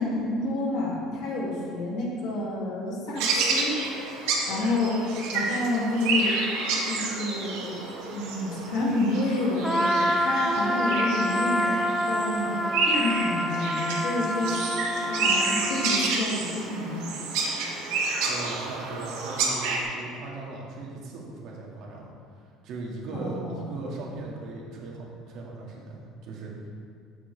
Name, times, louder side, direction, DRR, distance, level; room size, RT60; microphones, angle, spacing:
voice 1, 0.0-3.8 4.2-6.4 6.9-7.8 8.1-11.8 12.0-17.1 23.1-23.7, left 2 dB, 60° left, -4 dB, 2.6 m, -29 dB
sound 1, 3.2-19.8, right 3 dB, 80° right, 2.0 m, -29 dB
Trumpet, 9.6-16.1, equal, ahead, 0.4 m, -27 dB
voice 2, 18.3-26.7, right 2 dB, 55° right, -3 dB, 2.1 m, -38 dB
13.5 x 7.3 x 3.4 m, 2.2 s
cardioid pair, 160°, 0 cm